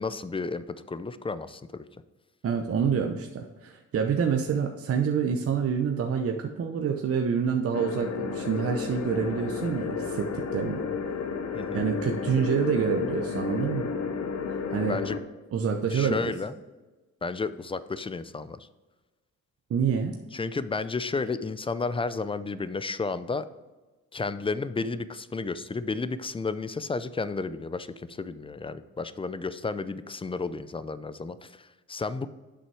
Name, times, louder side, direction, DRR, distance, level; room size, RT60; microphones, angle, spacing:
voice 1, 0.0-1.9 11.5-11.9 14.8-15.2 15.9-16.5 17.2-18.7 20.3-23.5 24.1-32.3, left 4 dB, 20° left, 14 dB, 0.5 m, -32 dB
voice 2, 2.4-10.8 11.7-13.9 14.5-15.0 15.5-16.2 19.7-20.2, right 6 dB, 50° right, 4 dB, 0.8 m, -27 dB
sound 1, 7.7-15.2, left 5 dB, 60° left, 1.0 m, -32 dB
8.1 x 6.3 x 4.7 m, 1.2 s
cardioid pair, 90°, 30 cm